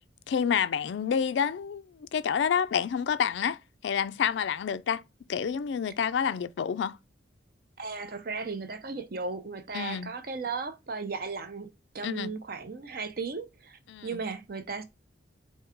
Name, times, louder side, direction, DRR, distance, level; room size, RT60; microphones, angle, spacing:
voice 1, 0.3-5.0 5.3-7.0 9.7-10.1 12.0-12.3 13.9-14.2, left 7 dB, 70° left, 0.3 m, -28 dB
voice 2, 7.8-11.7 11.9-14.8, right 4 dB, 50° right, 0.6 m, -36 dB
4.6 x 2.8 x 3.5 m
head